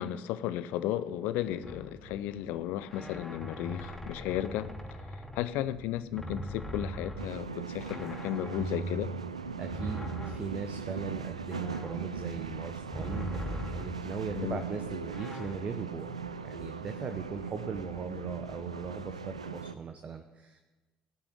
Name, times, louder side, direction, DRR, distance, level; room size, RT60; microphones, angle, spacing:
voice 1, 0.0-5.0 5.3-9.1 14.3-14.6, left 12 dB, 65° left, 0.6 m, -34 dB
sound 1, 1.4-1.5 2.0-2.6 2.9-3.5 3.9-4.5 4.9-5.5 5.9-6.5 6.8-7.3 7.7-8.2 8.5-9.0 9.3-9.8 10.1-10.6 10.9-11.3 11.6-12.0 12.3-19.4, right 2 dB, 55° right, 3.9 m, -53 dB
sound 2, 1.6-2.2 2.9-5.8 6.2-14.3 15.1-15.5, equal, 5° left, 2.7 m, -40 dB
sound 3, 7.2-19.7, right 5 dB, 85° right, 0.4 m, -39 dB
voice 2, 9.6-16.1 16.4-20.6, right 5 dB, 40° right, 0.9 m, -39 dB
17.5 x 7.0 x 8.5 m
figure-of-eight pair, 50°, 3 cm